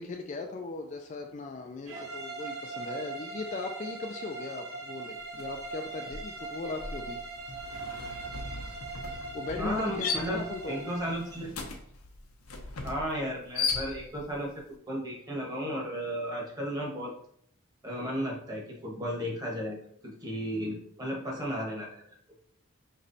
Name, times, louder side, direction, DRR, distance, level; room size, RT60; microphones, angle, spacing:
voice 1, 0.0-7.3 9.3-10.8, left 3 dB, 35° left, 4 dB, 0.3 m, -38 dB
sound 1, 1.9-11.3, right 3 dB, 75° right, 1.4 m, -40 dB
sound 2, 5.3-5.6 5.9-14.4, left 4 dB, 85° left, 0.7 m, -37 dB
voice 2, 9.6-11.6 12.8-17.1 17.8-19.8 20.0-22.0, equal, 15° right, -2 dB, 1.1 m, -34 dB
5.5 x 3.0 x 2.6 m, 0.65 s
head